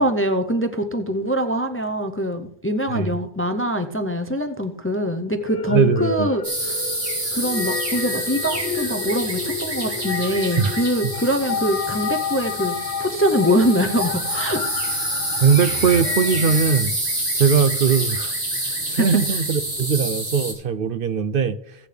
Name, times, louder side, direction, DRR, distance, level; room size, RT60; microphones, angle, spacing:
voice 1, 0.0-6.8 7.3-12.7 13.0-14.6 18.9-19.1, equal, 15° left, 0.5 m, -23 dB
sound 1, 5.3-16.8, left 5 dB, 90° left, 1.5 m, -30 dB
voice 2, 5.7-6.3 10.6-10.8 15.4-16.9 17.3-18.3 18.9-21.8, right 6 dB, 60° right, 0.8 m, -20 dB
sound 2, 6.4-20.5, right 1 dB, 85° right, 3.9 m, -27 dB
16.5 x 8.5 x 3.4 m
omnidirectional pair, 1.1 m